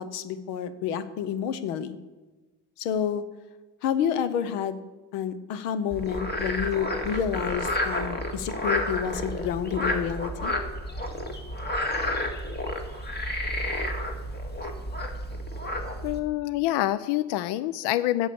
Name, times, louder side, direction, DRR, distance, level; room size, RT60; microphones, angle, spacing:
voice 1, 0.0-2.0 2.8-3.2 3.8-4.8 5.1-10.5, left 8 dB, 90° left, 13 dB, 1.0 m, -29 dB
Frog, 5.9-16.2, left 1 dB, 20° left, 2.1 m, -30 dB
voice 2, 16.0-18.3, left 15 dB, 65° left, 16 dB, 0.6 m, -26 dB
11.0 x 8.3 x 7.0 m, 1.2 s
supercardioid pair, 80°, 46 cm